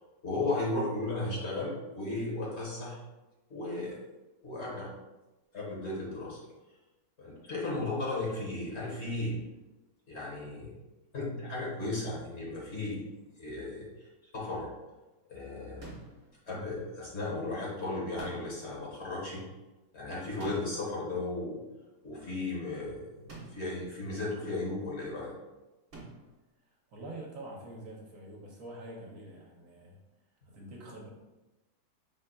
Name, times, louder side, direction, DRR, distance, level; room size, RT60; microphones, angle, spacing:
voice 1, 0.2-3.0 3.5-4.0 4.4-4.9 5.5-6.4 7.2-9.4 10.1-10.7 11.1-13.0 13.4-14.1 14.3-14.7 15.3-15.9 16.5-19.4 19.9-21.6 22.0-25.3, left 2 dB, 45° left, -5 dB, 1.5 m, -35 dB
sound 1, 15.8-16.3 18.2-18.8 20.4-21.0 23.3-23.8 25.9-26.4, right 3 dB, 40° right, 1.3 m, -48 dB
voice 2, 26.9-30.0 30.5-31.1, right 1 dB, 65° right, -2 dB, 1.1 m, -45 dB
5.4 x 3.8 x 2.3 m, 1.0 s
omnidirectional pair, 1.6 m